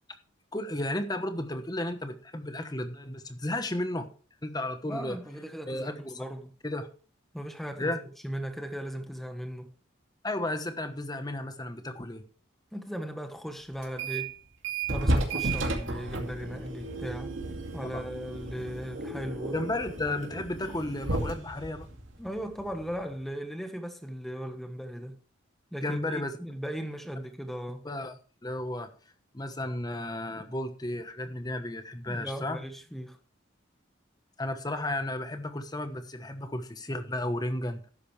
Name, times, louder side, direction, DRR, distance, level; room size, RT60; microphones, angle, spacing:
voice 1, 0.5-4.1 4.4-5.2 5.7-6.2 6.6-6.9 7.8-8.0 10.2-12.2 17.9-18.0 19.5-21.9 25.8-26.4 27.8-28.9 29.3-32.6 34.4-37.9, left 1 dB, 20° left, 1.1 m, -33 dB
voice 2, 4.8-6.5 7.3-8.0 8.2-9.7 12.7-14.3 14.9-17.3 17.7-19.6 22.2-25.2 25.7-27.9 32.1-33.2, equal, ahead, 1.3 m, -37 dB
sound 1, 13.8-14.3 14.6-23.1, right 2 dB, 75° right, 2.4 m, -33 dB
12.5 x 10.5 x 3.3 m
head